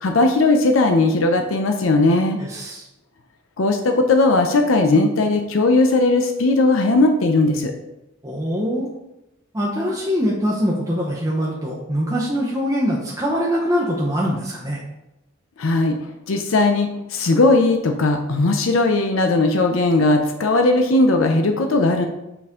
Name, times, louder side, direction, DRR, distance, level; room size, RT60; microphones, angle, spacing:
voice 1, 0.0-2.4 3.6-7.7 15.6-16.0 16.3-22.1, left 2 dB, 75° left, 5 dB, 0.6 m, -18 dB
voice 2, 2.4-2.8 8.2-8.9 9.5-14.8, equal, 15° right, -5 dB, 0.8 m, -23 dB
6.7 x 4.3 x 3.7 m, 0.91 s
head